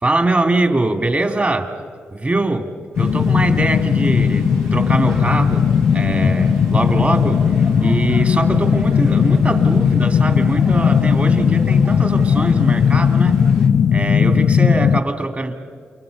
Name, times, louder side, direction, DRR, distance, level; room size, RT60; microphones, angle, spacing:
voice 1, 0.0-1.7 2.1-7.4 7.8-13.4 13.9-15.5, right 2 dB, 35° right, 5 dB, 2.8 m, -22 dB
sound 1, 2.9-13.7, right 2 dB, 75° right, 3.0 m, -33 dB
sound 2, 3.0-15.0, left 7 dB, 75° left, 0.5 m, -16 dB
29.0 x 23.5 x 5.5 m, 2.1 s
supercardioid pair, 40°, 4 cm